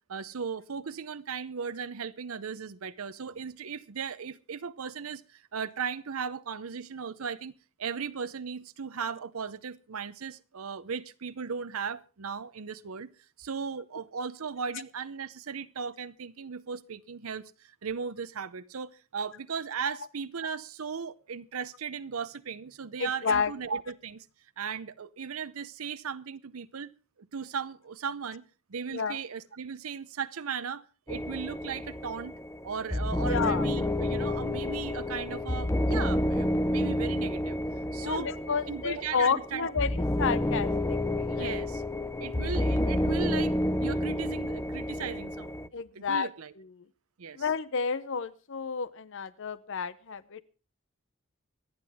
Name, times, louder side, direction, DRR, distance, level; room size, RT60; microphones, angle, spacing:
voice 1, 0.1-7.5 7.8-13.1 13.4-24.3 24.6-26.9 27.2-28.4 28.7-32.3 32.6-37.6 37.9-38.3 38.7-39.7 41.3-41.8 42.2-46.5 47.2-47.5, right 6 dB, 85° right, 0.7 m, -37 dB
voice 2, 23.0-23.5 28.9-29.2 33.3-33.7 38.0-41.7 45.7-46.3 47.4-50.4, left 5 dB, 60° left, 0.7 m, -31 dB
sound 1, 31.1-45.7, left 1 dB, 15° left, 0.6 m, -30 dB
25.5 x 9.6 x 3.5 m
head